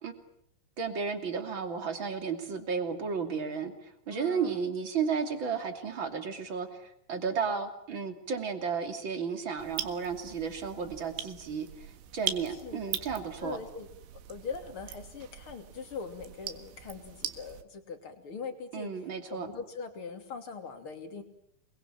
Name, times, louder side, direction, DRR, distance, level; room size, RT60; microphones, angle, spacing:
voice 1, 0.8-6.8 7.1-13.6 18.7-19.5, right 6 dB, 30° right, 7 dB, 2.6 m, -33 dB
voice 2, 4.1-4.6 12.5-12.8 13.4-13.9 14.3-18.9 19.3-21.2, left 5 dB, 35° left, 7 dB, 3.0 m, -41 dB
sound 1, 9.6-17.6, right 11 dB, 85° right, 4.2 m, -41 dB
29.0 x 22.0 x 8.9 m, 0.72 s
omnidirectional pair, 5.4 m